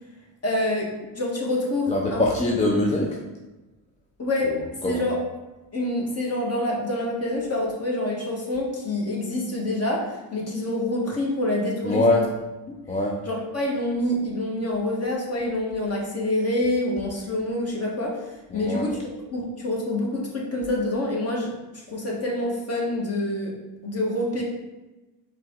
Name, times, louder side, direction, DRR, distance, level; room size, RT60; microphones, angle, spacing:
voice 1, 0.4-0.9 1.1-2.6 4.2-4.5 4.8-5.2 5.7-12.2 13.2-18.1 18.5-19.0 19.3-21.5 21.9-23.5 23.8-24.4, left 1 dB, 30° left, -2 dB, 1.4 m, -26 dB
voice 2, 1.9-3.2 4.4-5.0 11.8-12.3 12.9-13.2 18.5-18.8, left 2 dB, 15° left, -1 dB, 0.5 m, -23 dB
4.7 x 3.0 x 3.7 m, 1.1 s
cardioid pair, 95°, 45 cm